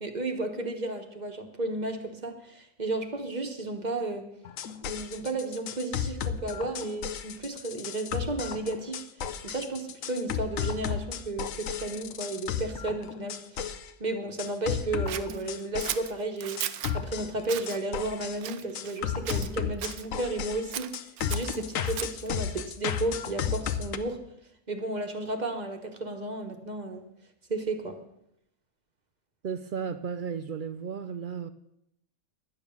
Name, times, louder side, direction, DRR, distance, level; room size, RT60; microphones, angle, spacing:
voice 1, 0.0-4.3 4.8-9.0 9.4-16.6 16.9-20.9 21.3-24.2 24.7-27.1 27.5-28.0, right 2 dB, 30° right, 1.3 m, -33 dB
sound 1, 4.5-13.9 14.4-16.1 16.6-18.4 18.8-24.0, left 8 dB, 70° left, 1.1 m, -33 dB
Scissors, 15.1-17.0 17.4-17.8 18.4-19.0 19.3-20.1 20.7-22.3, right 11 dB, 85° right, 1.2 m, -36 dB
voice 2, 29.4-31.5, right 7 dB, 70° right, 0.4 m, -34 dB
11.0 x 9.2 x 7.1 m
omnidirectional pair, 1.5 m